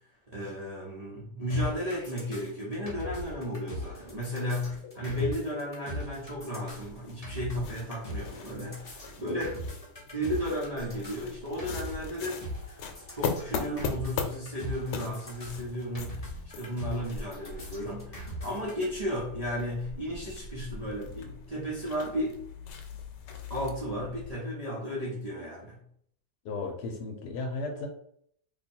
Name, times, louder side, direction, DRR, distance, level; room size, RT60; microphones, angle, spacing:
voice 1, 0.3-9.6 10.1-12.4 13.1-16.3 16.5-22.4 23.5-25.8, equal, 35° right, -7 dB, 0.6 m, -34 dB
sound 1, 1.5-18.9, equal, 30° left, 0.8 m, -41 dB
sound 2, 6.7-24.3, left 5 dB, 90° left, 1.3 m, -40 dB
voice 2, 26.4-27.9, left 3 dB, 75° left, 3 dB, 1.2 m, -35 dB
2.9 x 2.3 x 4.2 m, 0.65 s
omnidirectional pair, 1.8 m